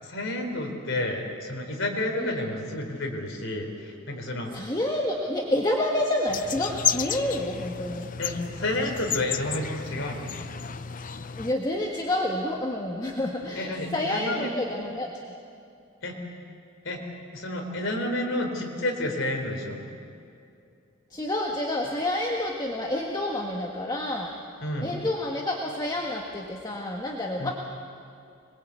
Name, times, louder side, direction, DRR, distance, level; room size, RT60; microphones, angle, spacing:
voice 1, 0.0-4.5 8.2-10.4 13.5-14.5 16.0-16.1 16.8-17.0 17.3-19.8 24.6-24.9 27.4-27.5, left 1 dB, 65° left, 2 dB, 4.2 m, -30 dB
voice 2, 2.2-2.5 4.5-8.0 11.4-15.1 21.1-24.3 24.8-27.5, left 1 dB, 20° left, -1 dB, 1.6 m, -29 dB
sound 1, 6.3-11.5, left 9 dB, 40° left, 0.7 m, -32 dB
26.0 x 21.5 x 8.4 m, 2.5 s
head